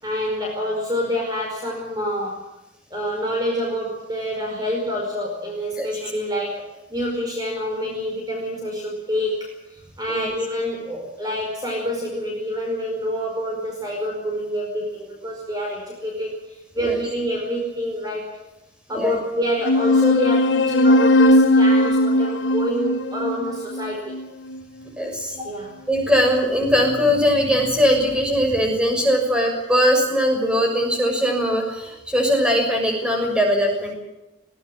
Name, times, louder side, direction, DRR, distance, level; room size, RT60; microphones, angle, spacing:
voice 1, 0.0-2.5 2.9-6.6 6.9-18.4 18.9-24.2 25.4-25.8, equal, 20° right, 0 dB, 5.0 m, -27 dB
sound 1, 19.6-24.6, left 1 dB, 90° left, 1.1 m, -18 dB
voice 2, 25.0-25.4 25.9-33.9, equal, 5° right, 2 dB, 6.4 m, -20 dB
21.0 x 18.5 x 8.6 m, 0.97 s
head